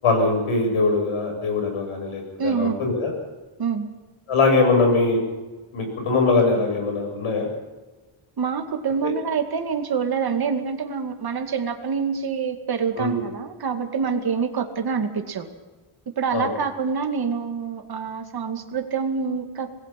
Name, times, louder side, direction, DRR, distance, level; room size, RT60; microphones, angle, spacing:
voice 1, 0.0-3.1 4.3-5.2 5.7-7.5 9.0-9.1 13.0-13.2 16.3-16.5, left 3 dB, 85° left, 3 dB, 8.0 m, -21 dB
voice 2, 2.4-2.8 3.6-3.9 8.4-15.5 16.1-19.7, right 6 dB, 50° right, 6 dB, 2.3 m, -26 dB
26.5 x 20.0 x 6.0 m, 1.2 s
wide cardioid pair, 170°, 49 cm